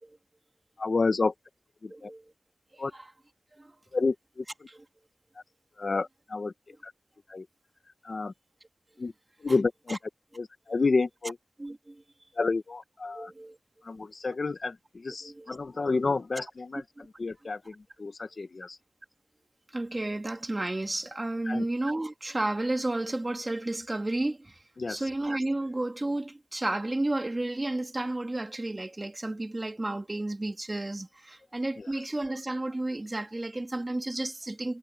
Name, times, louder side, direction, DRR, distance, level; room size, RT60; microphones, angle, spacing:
voice 1, 0.8-1.3 1.8-2.1 2.8-2.9 3.9-4.4 5.8-6.5 6.8-6.9 7.3-7.4 8.0-8.3 9.0-9.1 9.4-10.0 10.3-11.4 12.3-13.3 13.8-16.8 17.2-18.8 21.4-21.6 24.8-25.0 31.8-31.9, left 3 dB, 50° left, 1.3 m, -30 dB
voice 2, 1.9-2.3 2.7-3.1 3.6-3.7 4.7-4.8 9.5-9.6 9.9-10.0 11.6-12.0 13.1-13.6 13.9-14.0 15.2-15.6 16.7-16.8 19.7-24.6 24.9-34.8, right 2 dB, 25° right, 2.9 m, -32 dB
wide cardioid pair, 100°, 0 cm